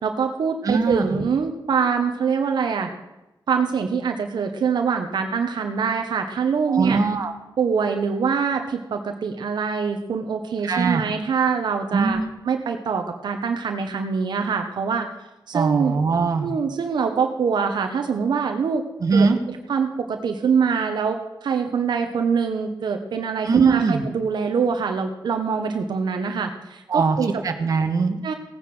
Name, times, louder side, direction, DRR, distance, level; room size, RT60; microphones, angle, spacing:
voice 1, 0.0-2.9 3.5-7.0 7.6-12.2 12.4-15.1 15.5-15.9 16.4-18.8 19.1-27.3 28.2-28.3, right 6 dB, 75° right, 5 dB, 1.2 m, -24 dB
voice 2, 0.6-1.0 6.7-7.3 10.6-11.0 11.9-12.2 15.5-16.5 19.0-19.4 23.4-24.0 26.9-27.2 27.4-28.3, right 4 dB, 50° right, 5 dB, 1.5 m, -21 dB
17.0 x 9.6 x 6.2 m, 0.98 s
wide cardioid pair, 150°, 8 cm